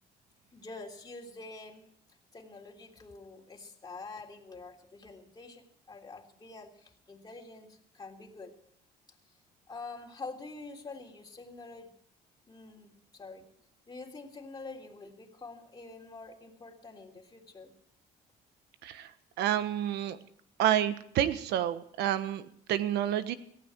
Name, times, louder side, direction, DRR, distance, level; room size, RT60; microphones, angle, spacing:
voice 1, 0.5-1.8 2.3-8.5 9.7-11.9 12.5-13.5 13.9-17.7, left 3 dB, 25° left, 0 dB, 3.4 m, -46 dB
voice 2, 19.4-20.2 20.6-23.3, right 11 dB, 80° right, 12 dB, 1.2 m, -29 dB
18.5 x 15.5 x 4.6 m, 0.67 s
cardioid pair, 110°, 17 cm